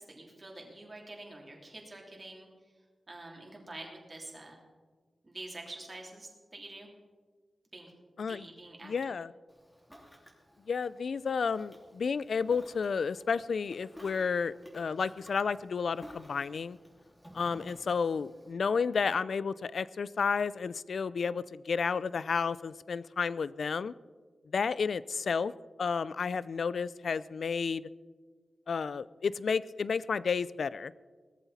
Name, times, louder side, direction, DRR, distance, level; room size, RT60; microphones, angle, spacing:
voice 1, 0.1-2.5 3.1-4.6 5.2-6.9 7.7-7.9 8.2-8.9, right 2 dB, 30° right, -1 dB, 3.2 m, -47 dB
voice 2, 8.8-9.3 10.7-16.8 17.3-23.9 24.5-25.5 25.8-27.9 28.7-30.9, left 5 dB, 70° left, 18 dB, 0.4 m, -31 dB
Ocean, 9.5-18.5, equal, 5° left, 3.1 m, -54 dB
18.5 x 14.0 x 4.2 m, 1.4 s
wide cardioid pair, 145°, 0 cm